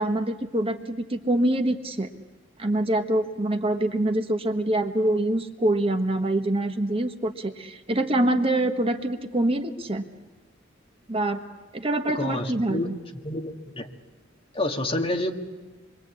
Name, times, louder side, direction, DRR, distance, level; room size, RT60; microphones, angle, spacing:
voice 1, 0.0-2.1 2.6-10.0 11.1-11.4 11.7-12.9, right 1 dB, 30° right, 6 dB, 1.4 m, -25 dB
voice 2, 12.1-13.0 13.2-13.9 14.5-15.3, left 1 dB, 30° left, 3 dB, 2.1 m, -28 dB
27.5 x 23.5 x 8.5 m, 1.3 s
head